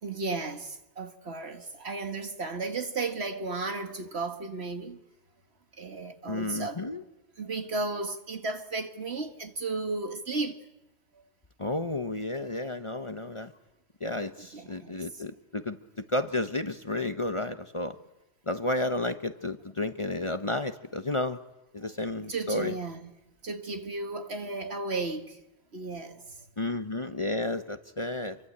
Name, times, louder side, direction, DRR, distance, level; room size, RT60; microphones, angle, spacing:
voice 1, 0.0-5.0 5.8-6.8 7.4-10.6 11.1-11.2 14.4-15.2 22.2-23.0 23.4-25.4 25.7-26.5, right 3 dB, 70° right, 1.9 m, -34 dB
voice 2, 6.3-7.0 11.6-13.5 14.0-18.0 18.5-21.4 21.7-22.7 26.6-28.4, left 2 dB, 30° left, 1.0 m, -32 dB
27.0 x 23.5 x 8.7 m
omnidirectional pair, 1.1 m